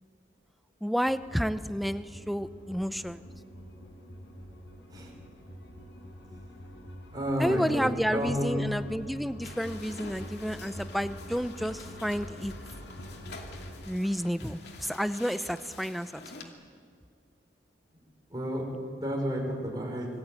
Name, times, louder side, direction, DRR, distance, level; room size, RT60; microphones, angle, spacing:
voice 1, 0.8-3.2 7.4-12.5 13.9-16.5, equal, ahead, 12 dB, 0.6 m, -31 dB
sound 1, 1.0-13.7, equal, 90° left, 4.8 m, -46 dB
voice 2, 7.1-8.6 18.3-18.6 19.0-20.1, equal, 20° right, -1 dB, 4.9 m, -31 dB
sound 2, 9.4-16.4, left 3 dB, 65° left, 2.7 m, -48 dB
26.0 x 21.0 x 9.0 m, 2.2 s
head